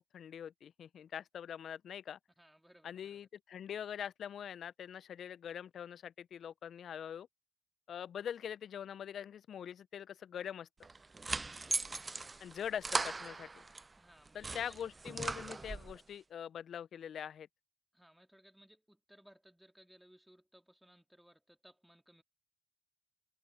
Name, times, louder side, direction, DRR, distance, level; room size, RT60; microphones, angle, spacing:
voice 1, 0.1-2.2 2.8-7.3 7.9-10.7 12.4-13.6 14.3-17.5, left 9 dB, 55° left, 0.5 m, -43 dB
voice 2, 2.4-3.2 11.1-11.7 14.0-14.8 17.9-22.2, equal, 5° right, 2.6 m, -63 dB
sound 1, 10.8-13.9 14.3-16.0, right 3 dB, 25° right, 0.5 m, -39 dB
supercardioid pair, 70°, 0 cm